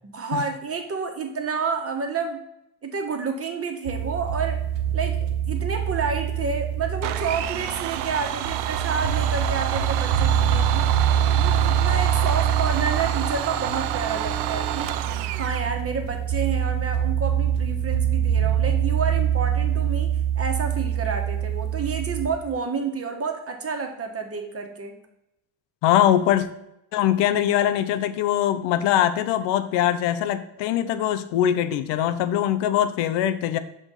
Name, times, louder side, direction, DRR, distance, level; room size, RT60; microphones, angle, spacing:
voice 1, 0.0-2.4 2.8-4.6 4.9-10.9 11.3-15.0 15.4-24.9, right 5 dB, 35° right, 4 dB, 1.4 m, -29 dB
sound 1, 3.9-22.3, right 9 dB, 85° right, 1.1 m, -25 dB
Domestic sounds home sounds, 7.0-15.7, right 12 dB, 70° right, 0.6 m, -29 dB
voice 2, 25.8-26.5 26.9-33.6, left 11 dB, 75° left, 12 dB, 0.7 m, -22 dB
6.0 x 5.1 x 3.9 m, 0.85 s
supercardioid pair, 80°, 43 cm